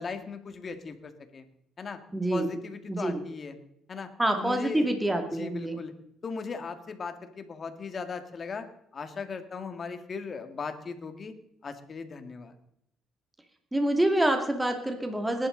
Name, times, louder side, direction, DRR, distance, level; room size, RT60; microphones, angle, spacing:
voice 1, 0.0-1.4 1.8-2.0 2.3-3.5 3.9-4.1 4.4-4.9 5.3-5.9 6.2-8.7 8.9-11.3 11.6-12.5, left 5 dB, 40° left, 8 dB, 2.0 m, -38 dB
voice 2, 2.1-2.6 2.9-3.2 4.2-5.8 13.7-15.5, right 1 dB, 10° right, 5 dB, 2.4 m, -26 dB
20.0 x 11.5 x 4.0 m, 0.75 s
cardioid pair, 100°, 0 cm